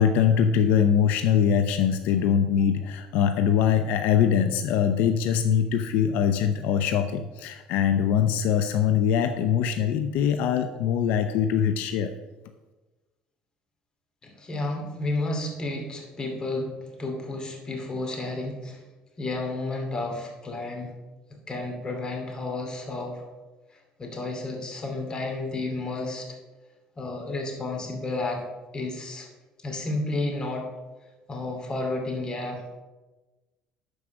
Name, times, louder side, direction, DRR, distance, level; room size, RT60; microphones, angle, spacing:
voice 1, 0.0-12.1, left 8 dB, 75° left, 7 dB, 0.6 m, -22 dB
voice 2, 14.2-18.8 19.2-20.9 21.5-23.2 23.7-26.3 27.0-28.4 28.7-29.3 29.6-30.7 31.3-32.6, left 2 dB, 30° left, 2 dB, 2.6 m, -31 dB
11.5 x 4.8 x 6.3 m, 1.2 s
cardioid pair, 105°, 3 cm